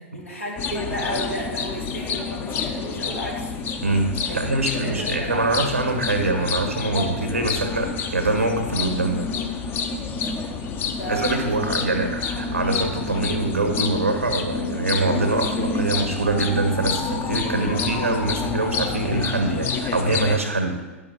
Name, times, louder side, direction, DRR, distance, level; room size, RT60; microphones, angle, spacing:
voice 1, 0.0-3.5 4.3-5.5 6.9-7.4 10.9-12.1, equal, 85° left, -6 dB, 2.8 m, -33 dB
sound 1, 0.6-20.4, left 5 dB, 30° left, 0.8 m, -28 dB
voice 2, 3.8-9.3 11.1-20.8, right 2 dB, 85° right, 4 dB, 1.4 m, -24 dB
11.0 x 6.0 x 4.2 m, 1.2 s
figure-of-eight pair, 95°, 7 cm